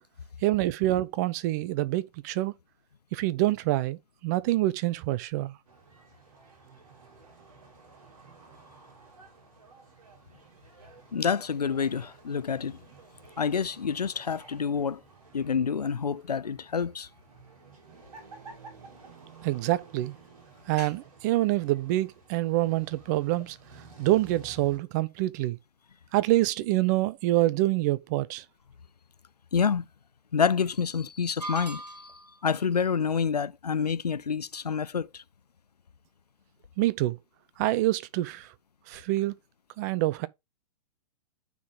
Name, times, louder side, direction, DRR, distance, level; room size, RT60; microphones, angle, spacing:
voice 1, 0.4-2.5 3.1-5.6 19.4-20.1 20.7-23.6 24.0-25.6 26.1-28.4 36.8-37.2 37.6-38.5 38.9-39.3 39.8-40.3, right 16 dB, 25° right, 0.4 m, -26 dB
sound 1, 5.7-24.8, right 4 dB, 60° right, 3.0 m, -53 dB
voice 2, 11.1-12.8 13.4-15.0 15.3-17.1 20.8-20.9 29.5-29.8 30.3-32.1 32.4-35.2, left 6 dB, 80° left, 0.4 m, -28 dB
sound 2, 31.4-32.4, right 1 dB, 80° right, 2.1 m, -38 dB
9.3 x 3.8 x 3.8 m
figure-of-eight pair, 110°, 20 cm